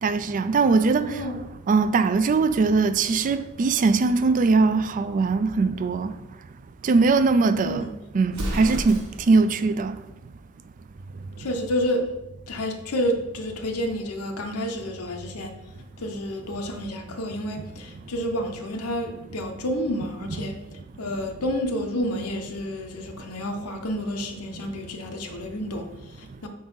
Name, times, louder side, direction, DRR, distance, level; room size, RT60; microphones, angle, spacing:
voice 1, 0.0-1.1 1.7-6.1 6.8-7.9 8.1-10.0, right 4 dB, 35° right, 0.3 m, -21 dB
voice 2, 0.9-1.4 7.5-7.9 11.4-12.2 12.5-15.5 16.0-20.6 21.0-26.5, equal, 85° left, 0.8 m, -30 dB
Explosion, 8.3-9.4, equal, 85° right, 1.4 m, -31 dB
4.7 x 3.9 x 5.4 m
head